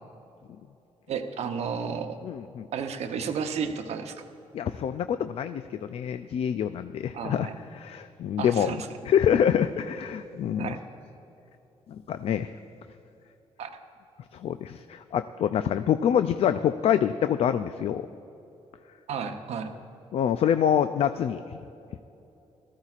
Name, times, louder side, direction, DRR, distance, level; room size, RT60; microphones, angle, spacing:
voice 1, 1.1-2.2 2.7-4.2 7.1-7.6 8.4-8.9 10.6-10.8 13.6-13.7 19.1-19.7, right 6 dB, 75° right, 6 dB, 0.8 m, -32 dB
voice 2, 2.2-2.7 4.5-7.5 7.7-8.8 9.0-10.7 11.9-12.5 14.3-18.1 20.1-21.6, left 9 dB, 65° left, 10 dB, 0.4 m, -26 dB
19.0 x 14.0 x 2.4 m, 2.9 s
cardioid pair, 105°, 11 cm